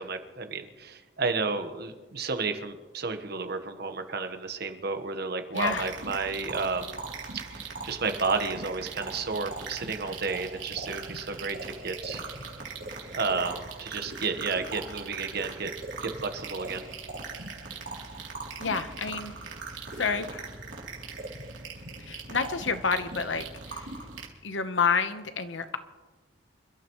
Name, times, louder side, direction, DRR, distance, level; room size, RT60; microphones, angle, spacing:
voice 1, 0.0-7.0 7.3-12.2 13.1-15.7 16.0-16.9, right 4 dB, 60° right, 7 dB, 1.3 m, -32 dB
voice 2, 5.5-5.9 18.6-19.3 19.9-20.5 22.0-23.9 24.4-25.8, left 5 dB, 80° left, 10 dB, 1.0 m, -29 dB
sound 1, 5.5-24.3, right 3 dB, 85° right, 3.1 m, -40 dB
28.0 x 12.5 x 3.1 m, 1.2 s
head